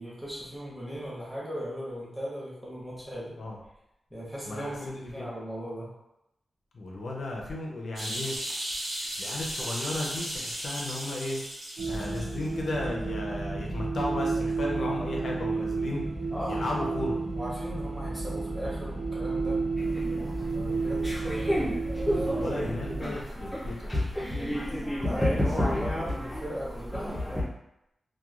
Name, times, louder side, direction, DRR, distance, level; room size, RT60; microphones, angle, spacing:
voice 1, 0.0-3.4 4.1-5.9 16.3-16.6 17.3-19.6 20.5-22.3 25.0-27.2, equal, 5° right, -7 dB, 0.9 m, -37 dB
voice 2, 4.5-5.3 6.7-8.3 9.2-11.4 11.9-16.0 16.5-17.2 22.1-24.0 25.7-25.9, left 2 dB, 60° left, -2 dB, 0.5 m, -34 dB
sound 1, 8.0-12.5 12.8-12.9, equal, 75° right, 1.1 m, -35 dB
sound 2, 11.8-23.0, right 3 dB, 50° right, 0.4 m, -31 dB
sound 3, 19.8-27.4, left 1 dB, 10° left, 0.5 m, -31 dB
2.9 x 2.2 x 2.3 m, 0.85 s
wide cardioid pair, 170°, 0 cm